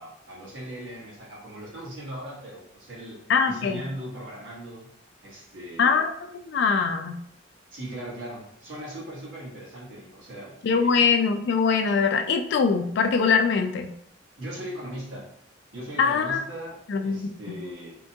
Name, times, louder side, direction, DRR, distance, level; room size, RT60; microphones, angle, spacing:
voice 1, 0.0-3.2 3.4-4.9 5.2-6.0 7.7-11.1 14.4-15.3 15.7-17.9, right 1 dB, 80° right, -5 dB, 1.2 m, -39 dB
voice 2, 3.3-3.8 5.8-6.1 6.5-7.2 10.6-13.9 16.0-16.4 16.9-17.3, left 5 dB, 60° left, 7 dB, 0.3 m, -22 dB
3.6 x 2.2 x 2.7 m, 0.70 s
head